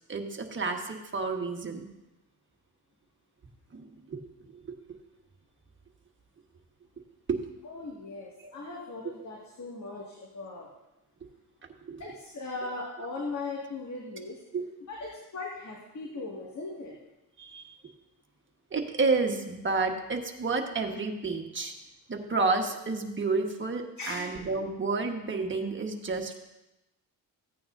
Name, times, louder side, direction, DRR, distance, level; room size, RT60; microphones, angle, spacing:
voice 1, 0.1-1.8 3.7-4.2 4.5-4.6 7.3-7.4 11.8-12.0 14.5-14.6 17.4-17.7 18.7-21.7 22.1-26.4, right 3 dB, 35° right, 3 dB, 1.4 m, -30 dB
voice 2, 7.6-10.7 12.0-14.4 14.9-16.9 24.0-24.3, left 3 dB, 50° left, -3 dB, 2.0 m, -38 dB
15.5 x 9.1 x 2.6 m, 0.97 s
cardioid pair, 90°, 36 cm